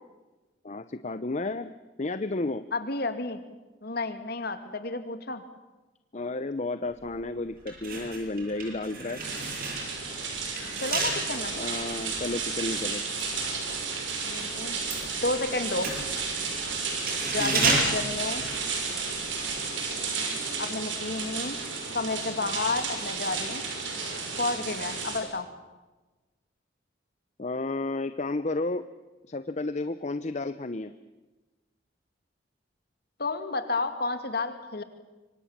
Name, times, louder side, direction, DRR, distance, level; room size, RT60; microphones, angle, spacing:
voice 1, 0.6-1.7 2.0-2.6 6.1-9.2 11.5-13.0 17.4-17.8 27.4-28.8 29.3-30.9, left 2 dB, 40° left, 11 dB, 0.7 m, -32 dB
voice 2, 2.7-3.4 3.8-5.4 10.8-11.6 14.2-14.8 15.1-15.9 17.3-18.4 20.6-21.6 21.9-23.7 24.4-25.5 33.2-34.8, left 3 dB, 55° left, 9 dB, 2.4 m, -31 dB
sound 1, 7.0-7.1 7.6-14.2 14.5-19.1 19.4-19.6, right 3 dB, 50° right, 8.0 m, -32 dB
sound 2, 9.2-25.2, right 4 dB, 80° right, 6.4 m, -33 dB
26.5 x 24.5 x 7.4 m, 1.2 s
head